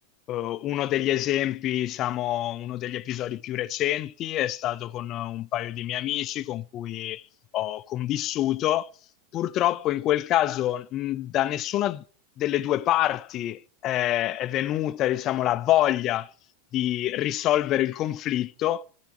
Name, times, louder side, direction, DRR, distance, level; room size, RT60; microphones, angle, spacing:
voice 1, 0.3-7.2 7.5-8.9 9.3-12.0 12.4-16.3 16.7-18.8, left 13 dB, 40° left, 0.4 m, -26 dB
12.5 x 6.8 x 4.7 m
hypercardioid pair, 100°, 0 cm